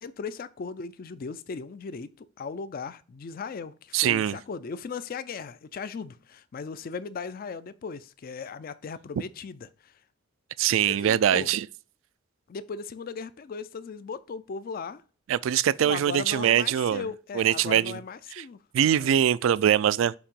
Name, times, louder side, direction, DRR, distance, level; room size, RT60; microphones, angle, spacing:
voice 1, 0.0-9.9 10.9-11.5 12.5-15.0 15.8-18.6 18.9-19.2, left 5 dB, 45° left, 0.4 m, -37 dB
voice 2, 3.9-4.4 10.6-11.6 15.3-17.1 17.3-18.0 18.3-18.4 18.7-20.1, right 9 dB, 75° right, 0.3 m, -23 dB
7.0 x 2.9 x 5.2 m
head